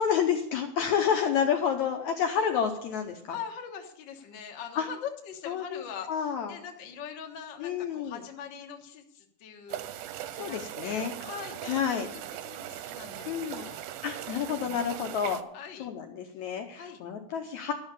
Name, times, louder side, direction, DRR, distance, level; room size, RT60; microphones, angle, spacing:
voice 1, 0.0-3.4 4.8-4.9 5.5-5.8 6.1-6.6 7.6-8.2 10.4-11.1 11.6-12.1 13.3-13.7 14.0-15.4 15.8-17.7, left 7 dB, 70° left, 5 dB, 1.8 m, -29 dB
voice 2, 3.3-11.7 12.0-13.8 15.5-15.9 16.7-17.0, left 7 dB, 55° left, 4 dB, 1.3 m, -42 dB
sound 1, 9.7-15.4, right 12 dB, 80° right, 2.0 m, -40 dB
12.5 x 6.2 x 8.4 m, 0.71 s
omnidirectional pair, 4.1 m